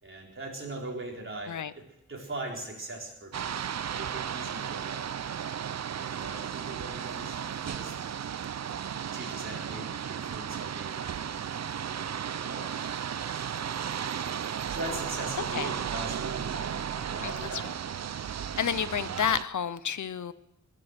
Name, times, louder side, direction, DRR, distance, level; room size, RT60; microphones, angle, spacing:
voice 1, 0.0-1.8 2.1-5.1 5.9-8.0 9.1-12.9 13.5-17.7, right 2 dB, 40° right, -2 dB, 4.1 m, -41 dB
sound 1, 3.3-19.4, right 8 dB, 60° right, 0.5 m, -34 dB
voice 2, 17.2-17.7 18.6-20.3, left 8 dB, 70° left, 16 dB, 0.6 m, -30 dB
21.0 x 7.7 x 8.0 m, 0.88 s
wide cardioid pair, 110°, 31 cm